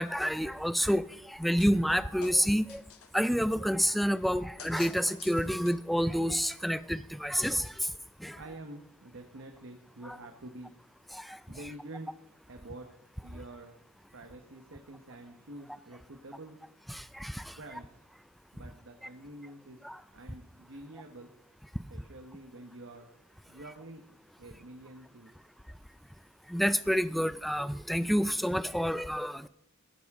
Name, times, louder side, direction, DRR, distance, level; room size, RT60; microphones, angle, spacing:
voice 1, 0.0-2.8 3.1-7.7 8.2-8.4 11.1-11.4 16.9-17.5 19.8-20.0 26.5-29.5, equal, ahead, 15 dB, 0.3 m, -29 dB
sound 1, 1.6-1.9 2.2-3.3 4.6-6.0, left 7 dB, 85° left, 1.0 m, -49 dB
voice 2, 8.3-10.7 11.5-12.1 12.5-12.9 13.2-13.8 14.1-16.6 17.5-18.0 18.5-19.8 20.1-21.3 21.9-23.1 23.5-24.0 24.4-25.3, right 2 dB, 65° right, 4 dB, 1.2 m, -47 dB
16.0 x 12.0 x 3.6 m, 0.83 s
head